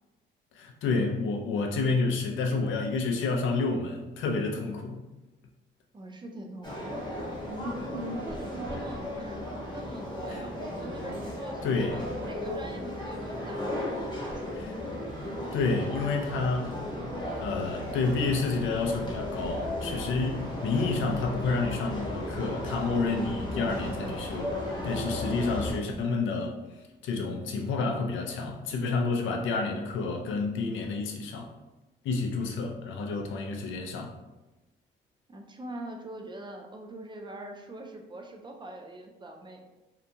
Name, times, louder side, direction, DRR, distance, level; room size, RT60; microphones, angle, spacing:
voice 1, 0.5-5.0 10.3-10.4 11.6-12.0 14.5-14.8 15.5-16.8 17.4-26.5 27.0-31.5 32.0-34.1, left 3 dB, 75° left, 2 dB, 0.5 m, -29 dB
voice 2, 5.9-7.0 7.5-9.5 9.7-14.6 35.3-39.7, right 1 dB, 25° right, 3 dB, 0.4 m, -42 dB
sound 1, 6.6-25.7, left 1 dB, 20° left, 0.9 m, -35 dB
2.8 x 2.2 x 2.6 m, 1.1 s
cardioid pair, 90°, 20 cm